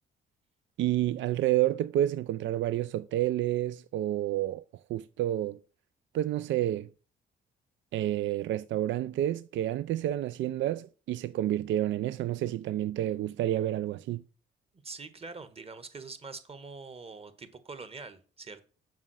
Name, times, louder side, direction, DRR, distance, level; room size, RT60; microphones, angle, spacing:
voice 1, 0.8-4.6 4.9-5.6 6.1-6.9 7.9-14.2, right 13 dB, 70° right, 0.4 m, -29 dB
voice 2, 14.8-18.6, right 4 dB, 30° right, 1.4 m, -44 dB
7.3 x 5.5 x 6.2 m
cardioid pair, 90°, 20 cm